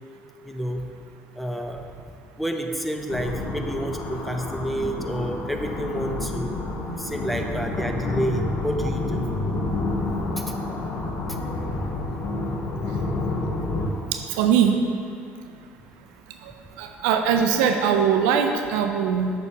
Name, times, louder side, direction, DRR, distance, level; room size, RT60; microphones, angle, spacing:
voice 1, 0.4-0.8 1.4-1.8 2.4-6.6 7.0-9.3 11.3-11.4, equal, ahead, 3 dB, 0.7 m, -29 dB
sound 1, 3.1-13.9, left 2 dB, 55° left, 0.9 m, -29 dB
voice 2, 14.1-14.8 16.4-16.5 16.8-19.3, right 7 dB, 75° right, 5 dB, 0.5 m, -21 dB
6.8 x 6.6 x 3.5 m, 2.4 s
hypercardioid pair, 55°, 6 cm